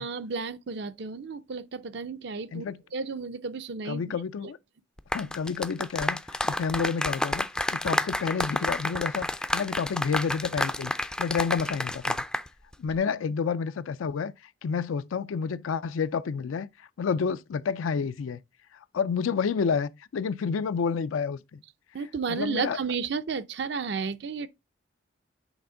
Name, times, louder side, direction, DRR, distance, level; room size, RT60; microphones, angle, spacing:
voice 1, 0.0-4.1 21.9-24.5, right 5 dB, 60° right, 0.5 m, -33 dB
voice 2, 3.9-4.6 5.1-6.2 6.4-10.9 11.2-12.2 12.8-14.3 14.6-18.4 18.9-21.6 22.3-22.8, left 6 dB, 90° left, 0.4 m, -29 dB
sound 1, 5.0-12.5 12.7-13.0, left 1 dB, 5° left, 0.3 m, -30 dB
8.1 x 3.5 x 3.7 m
head